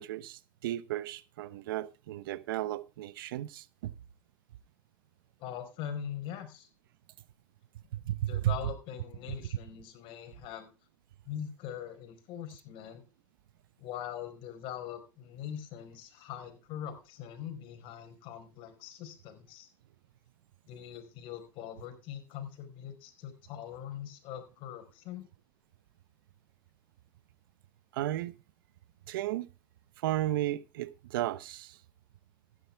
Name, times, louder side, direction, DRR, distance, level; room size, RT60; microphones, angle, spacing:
voice 1, 0.0-3.9 7.9-8.6 27.9-28.3 29.1-29.5 30.0-31.8, right 14 dB, 80° right, 0.9 m, -34 dB
voice 2, 5.4-6.7 8.3-10.7 11.2-13.0 13.8-19.7 20.7-25.3, left 9 dB, 50° left, 4.7 m, -42 dB
15.0 x 10.5 x 3.4 m
supercardioid pair, 120°, 11 cm